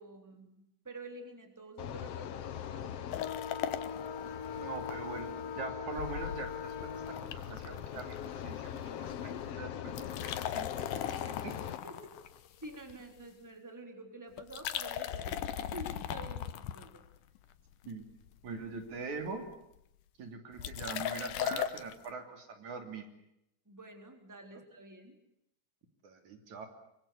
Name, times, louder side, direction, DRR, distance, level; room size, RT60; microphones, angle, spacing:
voice 1, 0.0-3.3 9.8-10.0 11.5-11.9 12.6-17.0 23.6-25.2, right 2 dB, 5° right, 5 dB, 3.4 m, -49 dB
sound 1, 1.8-11.8, left 9 dB, 60° left, 1.9 m, -40 dB
sound 2, 3.1-5.0 5.3-5.4 6.0-8.8 9.1-9.4 9.8-13.2 14.4-17.4 17.8-18.4 18.6-18.7 19.0-19.5 20.6-21.9, left 10 dB, 85° left, 2.7 m, -39 dB
voice 2, 4.6-5.3 5.6-9.9 10.2-11.6 17.9-18.1 18.4-19.4 20.2-23.1 26.0-26.7, right 4 dB, 65° right, 6 dB, 4.3 m, -43 dB
24.5 x 24.5 x 8.5 m, 0.79 s
omnidirectional pair, 3.6 m